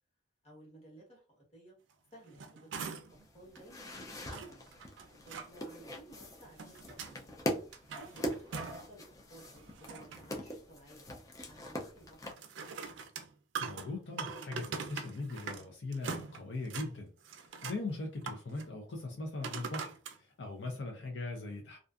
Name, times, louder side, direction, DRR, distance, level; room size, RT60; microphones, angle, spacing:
voice 1, 0.4-1.7 2.1-3.0 3.3-4.7 5.2-7.4 8.0-11.1 11.4-12.3 20.6-20.8, right 1 dB, 35° left, -3 dB, 1.2 m, -56 dB
sound 1, 2.1-3.2 3.6-3.7 4.3-5.5 6.3-7.2 7.6-8.9 9.3-10.3 12.2-15.7 15.9-16.9 17.2-17.8 18.2-18.7 19.4-20.2 20.8-20.9, right 5 dB, 85° right, 0.4 m, -43 dB
sound 2, 3.1-12.3, equal, 20° left, 0.4 m, -42 dB
voice 2, 13.6-21.8, left 2 dB, 70° left, 2 dB, 0.5 m, -40 dB
2.4 x 2.4 x 2.3 m, 0.39 s
head